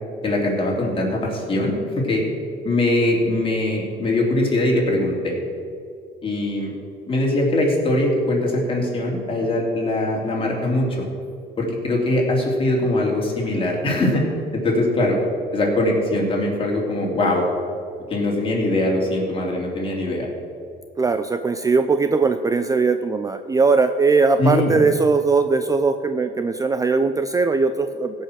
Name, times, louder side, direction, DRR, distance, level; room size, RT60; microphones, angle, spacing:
voice 1, 0.2-2.2 2.6-5.3 6.2-6.7 7.1-11.1 11.6-14.3 14.5-15.2 15.5-17.5 18.1-20.3 24.4-24.8, left 1 dB, 30° left, -2 dB, 3.2 m, -21 dB
voice 2, 21.0-28.2, right 4 dB, 20° right, 9 dB, 0.5 m, -20 dB
16.5 x 5.6 x 6.4 m, 2.4 s
cardioid pair, 110°, 17 cm